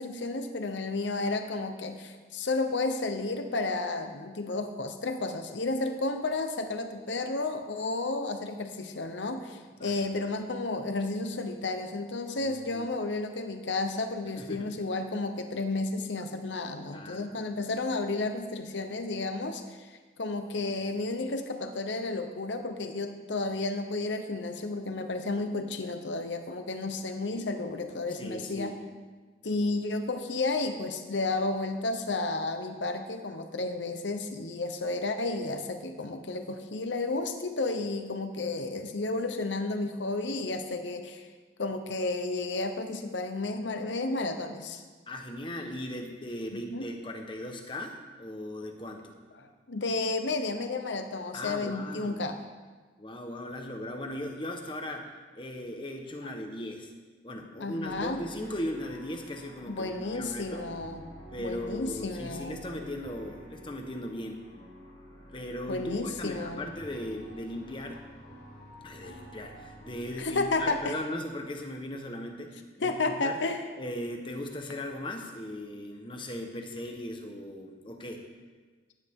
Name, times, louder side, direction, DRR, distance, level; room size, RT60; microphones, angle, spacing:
voice 1, 0.0-19.9 20.2-28.7 29.4-41.3 41.6-44.8 46.5-46.9 49.4-52.4 56.2-56.3 57.6-58.2 59.7-61.0 61.4-62.6 65.7-66.7 70.2-71.0 72.8-73.6, left 3 dB, 80° left, 6 dB, 0.9 m, -32 dB
voice 2, 9.8-10.3 12.4-12.9 14.4-14.7 16.9-17.3 28.1-28.8 45.1-49.1 51.3-52.2 53.0-55.1 55.3-56.9 57.2-60.6 61.3-64.5 65.3-68.0 68.8-73.4 73.8-78.3, left 1 dB, 25° left, 3 dB, 1.2 m, -38 dB
sound 1, 57.8-70.9, equal, 60° left, 3.7 m, -49 dB
16.0 x 10.5 x 3.7 m, 1.4 s
head